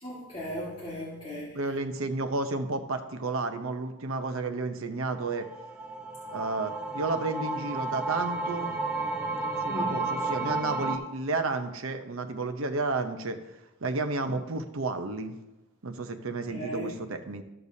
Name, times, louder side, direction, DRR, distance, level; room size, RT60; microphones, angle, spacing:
voice 1, 0.0-1.6 9.6-10.0 16.5-16.9, equal, 25° left, -8 dB, 1.8 m, -37 dB
voice 2, 1.5-5.5 6.3-8.7 9.6-13.4 13.8-15.3 15.8-17.4, right 3 dB, 65° right, 7 dB, 0.7 m, -32 dB
sound 1, 5.3-11.0, right 3 dB, 10° right, 0.8 m, -32 dB
13.5 x 6.7 x 2.7 m, 0.96 s
head